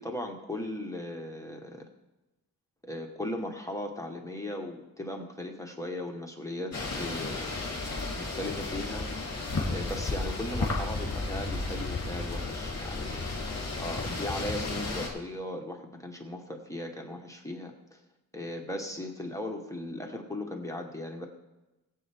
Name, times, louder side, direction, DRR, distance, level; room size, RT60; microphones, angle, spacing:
voice 1, 0.0-1.8 2.8-7.6 8.2-9.1 9.7-13.3 13.8-18.0 18.3-21.3, left 1 dB, 10° left, 2 dB, 1.1 m, -37 dB
sound 1, 6.7-15.1, left 3 dB, 45° left, 3.1 m, -33 dB
20.5 x 7.8 x 3.4 m, 1.0 s
wide cardioid pair, 165°, 38 cm